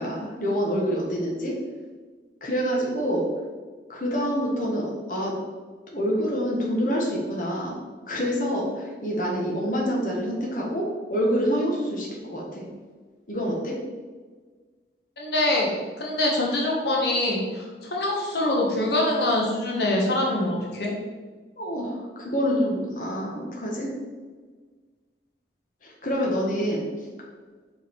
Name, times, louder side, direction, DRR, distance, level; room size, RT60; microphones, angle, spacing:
voice 1, 0.0-1.5 2.4-3.2 3.9-5.3 5.9-7.8 8.1-12.6 13.3-13.8 21.6-23.9 25.8-26.8, equal, 50° left, -3 dB, 1.3 m, -27 dB
voice 2, 15.2-15.7 16.0-20.9, left 1 dB, 70° left, -3 dB, 1.3 m, -24 dB
5.3 x 4.9 x 4.5 m, 1.4 s
head